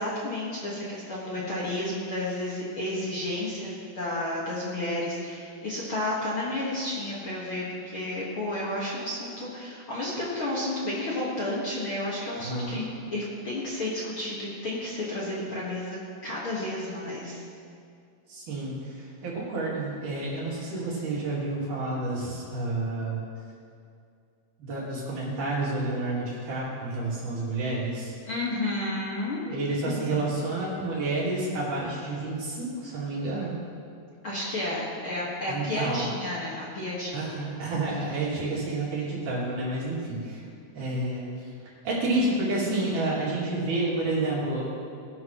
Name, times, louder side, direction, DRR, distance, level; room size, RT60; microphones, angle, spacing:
voice 1, 0.0-12.8 13.1-17.4 28.3-29.4 29.9-30.2 34.2-37.3, left 1 dB, 50° left, -7 dB, 1.6 m, -31 dB
voice 2, 12.4-12.8 18.3-23.2 24.6-28.1 29.5-33.6 35.5-36.1 37.1-40.4 40.8-41.2 41.8-44.7, right 2 dB, 50° right, -6 dB, 3.9 m, -29 dB
19.5 x 11.5 x 3.1 m, 2.4 s
omnidirectional pair, 4.8 m